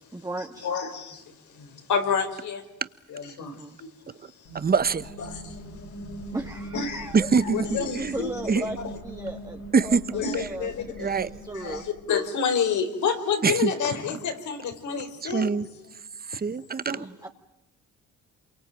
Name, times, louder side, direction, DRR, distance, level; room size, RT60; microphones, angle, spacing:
voice 1, 0.1-0.7 3.4-3.8 6.3-7.2 7.8-11.0 11.2-11.9 16.9-17.3, right 2 dB, 10° right, 1.8 m, -37 dB
voice 2, 0.6-1.2 1.5-2.6 3.1-3.9 5.3-5.5 6.7-7.1 7.4-8.3 8.8-8.9 10.1-11.1 11.6-11.8 12.1-15.5, left 6 dB, 75° left, 4.5 m, -28 dB
sound 1, 4.5-12.2, right 1 dB, 55° left, 5.3 m, -40 dB
voice 3, 4.5-5.1 7.1-8.1 8.5-8.6 9.7-10.0 10.4-10.5 11.0-11.3 13.4-13.7 15.2-15.7 16.3-17.0, right 5 dB, 30° right, 1.2 m, -24 dB
27.5 x 23.5 x 9.0 m
cardioid pair, 90°, 30 cm